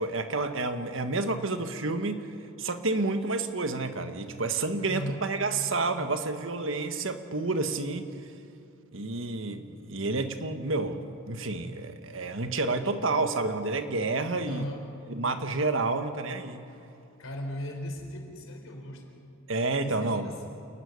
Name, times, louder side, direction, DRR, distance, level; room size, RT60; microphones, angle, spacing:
voice 1, 0.0-2.3 2.6-8.1 8.9-14.6 15.1-16.6 19.5-20.4, right 3 dB, 65° right, 8 dB, 1.5 m, -29 dB
voice 2, 4.9-5.3 14.5-14.9 17.2-19.1 19.8-20.5, equal, 80° left, 3 dB, 3.9 m, -37 dB
28.5 x 11.5 x 9.7 m, 2.7 s
head